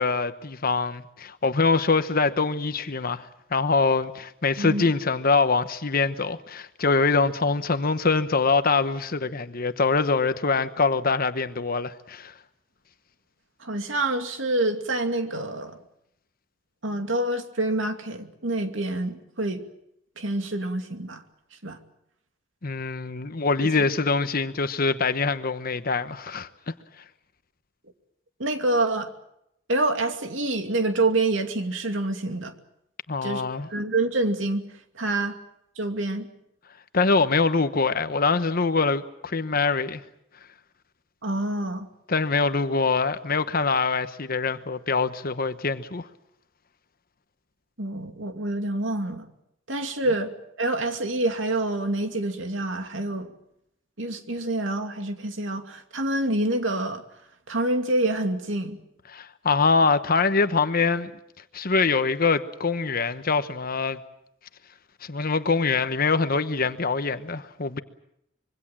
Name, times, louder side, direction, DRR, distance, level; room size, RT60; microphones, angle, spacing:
voice 1, 0.0-12.3 22.6-26.5 33.1-33.7 36.9-40.0 42.1-46.1 59.1-61.1 61.5-64.0 65.0-67.8, left 4 dB, 50° left, 1.0 m, -24 dB
voice 2, 13.6-15.8 16.8-19.6 20.2-21.2 21.6-21.8 23.6-23.7 28.4-29.1 29.7-32.5 33.2-33.4 33.7-34.6 34.9-35.4 35.8-36.3 41.2-41.9 47.8-49.3 49.7-50.3 50.6-53.3 54.0-57.0 57.5-58.8, right 2 dB, 75° right, 2.6 m, -27 dB
25.5 x 23.5 x 7.4 m
head